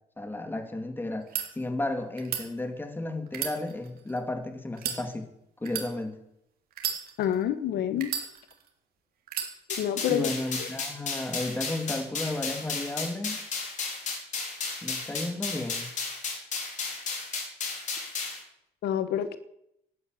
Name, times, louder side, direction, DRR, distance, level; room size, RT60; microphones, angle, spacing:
voice 1, 0.2-5.3 5.6-6.2 10.1-13.4 14.8-15.9, left 2 dB, 10° left, 7 dB, 2.2 m, -33 dB
sound 1, 1.1-1.5 2.2-2.4 3.3-4.2 4.7-5.0 5.6-5.9 6.7-7.4 8.0-8.7 9.3-9.5, right 8 dB, 60° right, 3.1 m, -33 dB
voice 2, 7.2-8.1 9.8-10.3 18.8-19.4, left 10 dB, 70° left, 13 dB, 1.1 m, -27 dB
sound 2, 9.7-18.4, left 4 dB, 45° left, 4.4 m, -34 dB
12.0 x 10.0 x 9.0 m, 0.79 s
cardioid pair, 110°, 17 cm